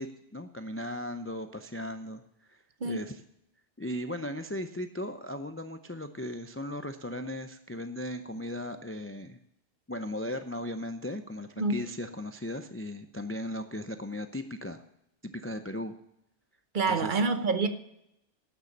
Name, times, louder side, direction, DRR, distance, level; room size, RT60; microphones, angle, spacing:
voice 1, 0.0-2.2 2.5-2.6 2.8-3.2 3.8-9.4 9.9-14.8 15.2-15.9 16.9-17.2, left 1 dB, 20° left, 0.4 m, -37 dB
voice 2, 16.7-17.7, right 4 dB, 50° right, 0.9 m, -27 dB
11.5 x 6.7 x 7.3 m
omnidirectional pair, 1.2 m